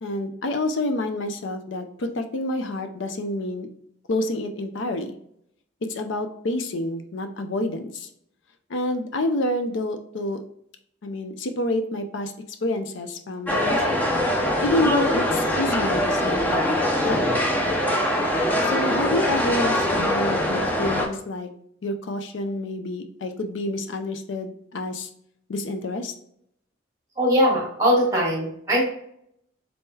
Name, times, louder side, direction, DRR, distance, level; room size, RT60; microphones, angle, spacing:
voice 1, 0.0-3.7 4.1-5.1 5.9-8.1 8.7-10.4 11.0-12.3 12.6-14.0 14.6-16.8 17.0-17.4 18.6-21.5 21.8-25.1 25.5-26.1, left 1 dB, 70° left, 7 dB, 0.5 m, -28 dB
sound 1, 13.5-21.1, left 1 dB, 10° left, 0.6 m, -23 dB
voice 2, 27.2-28.8, equal, 15° right, -3 dB, 1.6 m, -21 dB
4.1 x 3.7 x 2.7 m, 0.71 s
head